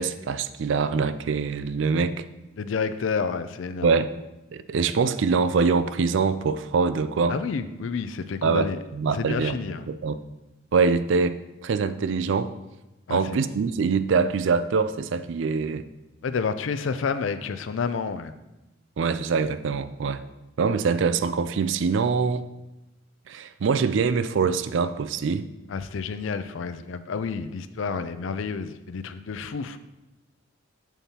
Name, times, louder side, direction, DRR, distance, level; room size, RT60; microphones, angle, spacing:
voice 1, 0.0-2.2 3.8-4.1 4.5-7.4 8.4-9.6 9.9-10.2 10.7-12.5 13.1-15.9 19.0-20.2 20.6-22.5 23.3-25.5, right 5 dB, 65° right, 13 dB, 0.4 m, -24 dB
voice 2, 2.6-4.0 7.3-8.8 9.1-9.9 13.1-13.2 16.2-18.3 25.7-29.8, left 5 dB, 70° left, 11 dB, 0.4 m, -29 dB
7.2 x 7.0 x 2.9 m, 0.99 s
head